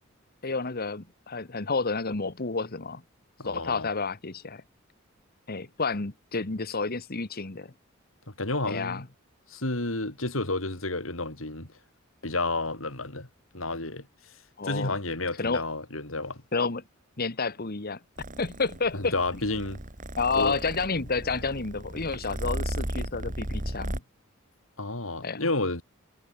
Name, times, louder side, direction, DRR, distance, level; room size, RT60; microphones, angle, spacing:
voice 1, 0.4-3.0 3.4-4.6 5.5-7.7 8.7-9.0 14.6-14.9 15.4-15.6 16.5-16.8 17.2-18.0 18.4-19.1 20.2-24.0 25.2-25.5, left 4 dB, 50° left, 1.5 m, -30 dB
voice 2, 3.4-3.9 8.3-9.0 9.5-11.7 12.2-13.3 13.5-14.1 14.6-16.4 18.9-19.8 20.3-20.6 24.8-25.8, left 2 dB, 75° left, 5.1 m, -31 dB
Purr, 18.2-24.0, right 1 dB, 40° right, 3.4 m, -35 dB
head